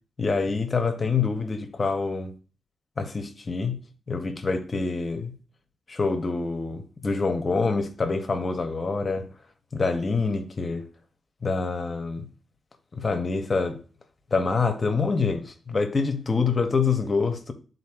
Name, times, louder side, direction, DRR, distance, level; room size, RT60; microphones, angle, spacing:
voice 1, 0.2-2.3 3.0-3.8 4.1-5.3 5.9-9.3 9.7-10.9 11.4-12.3 12.9-13.8 14.3-17.5, left 4 dB, 30° left, 0.6 m, -26 dB
11.0 x 3.9 x 2.3 m
wide cardioid pair, 160°, 0 cm